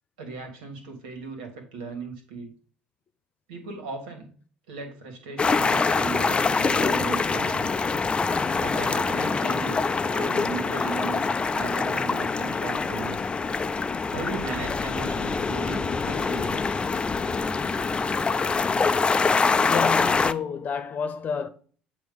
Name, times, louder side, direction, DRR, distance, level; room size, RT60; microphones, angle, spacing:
voice 1, 0.2-2.5 3.5-4.3 4.7-7.8 8.6-13.3 14.1-16.8, right 4 dB, 80° right, 1.8 m, -37 dB
sound 1, 5.4-20.3, left 4 dB, 25° left, 0.5 m, -25 dB
voice 2, 19.7-21.5, left 6 dB, 45° left, 0.9 m, -31 dB
7.9 x 2.9 x 5.3 m
hypercardioid pair, 65°, 4 cm